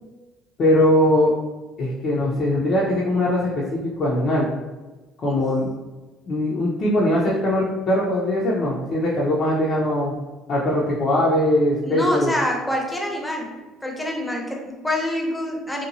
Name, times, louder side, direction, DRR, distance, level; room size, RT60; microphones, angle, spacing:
voice 1, 0.6-1.3 1.8-4.5 5.2-5.7 6.3-10.1 10.5-12.3, left 1 dB, 50° left, -5 dB, 0.5 m, -21 dB
voice 2, 11.8-13.5 13.8-15.9, left 1 dB, 10° left, 0 dB, 0.6 m, -26 dB
2.8 x 2.2 x 2.6 m, 1.2 s
supercardioid pair, 80°, 0 cm